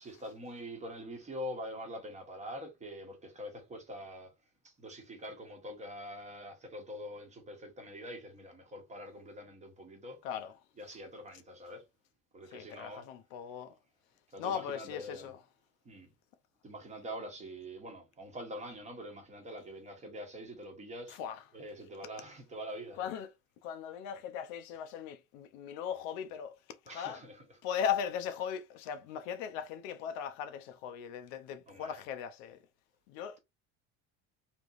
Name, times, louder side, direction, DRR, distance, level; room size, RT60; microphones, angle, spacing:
voice 1, 0.0-4.3 4.6-10.2 10.8-11.8 12.3-13.1 14.3-15.3 15.8-16.1 16.6-21.2 21.5-23.1 26.9-27.4 31.7-32.0, equal, 20° right, 0.9 m, -44 dB
voice 2, 10.2-10.6 12.5-13.8 14.4-15.4 21.1-21.4 23.0-23.3 23.6-26.6 26.9-27.2 27.6-32.6 33.1-33.4, left 8 dB, 90° left, 0.7 m, -38 dB
3.3 x 3.0 x 2.4 m
cardioid pair, 160°, 37 cm